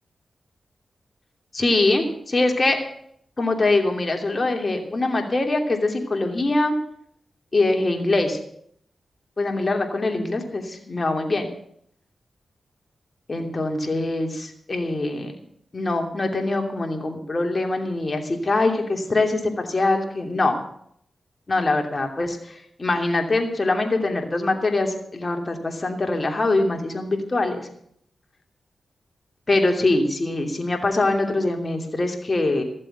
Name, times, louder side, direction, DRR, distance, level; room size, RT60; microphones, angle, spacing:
voice 1, 1.5-2.8 3.4-6.8 7.5-8.4 9.4-11.5 13.3-15.3 15.7-20.6 21.5-27.7 29.5-32.6, left 2 dB, 40° left, 3 dB, 2.8 m, -23 dB
14.5 x 7.5 x 7.8 m, 0.69 s
cardioid pair, 50°, 0 cm